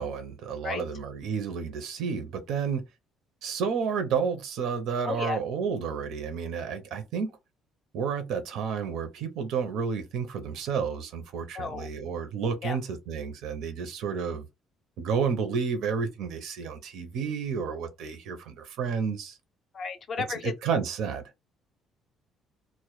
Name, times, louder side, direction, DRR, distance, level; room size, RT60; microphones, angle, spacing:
voice 1, 0.0-2.8 3.4-7.4 7.9-14.5 15.0-19.4 20.3-21.2, right 6 dB, 65° right, 0.5 m, -31 dB
voice 2, 5.0-5.4 11.6-11.9 12.6-12.8 19.7-20.5, left 5 dB, 35° left, 0.4 m, -33 dB
2.0 x 2.0 x 2.9 m
cardioid pair, 175°, 0 cm